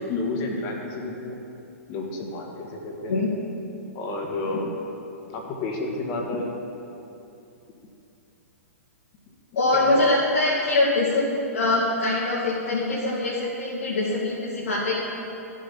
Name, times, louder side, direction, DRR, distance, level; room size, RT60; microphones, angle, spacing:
voice 1, 0.1-1.4 1.9-3.3 3.9-4.7 5.3-6.5 9.7-10.1, left 2 dB, 40° left, 0 dB, 1.8 m, -30 dB
voice 2, 9.6-11.3 11.5-14.9, left 2 dB, 75° left, -8 dB, 2.4 m, -23 dB
12.5 x 7.8 x 5.7 m, 2.8 s
hypercardioid pair, 115°, 8 cm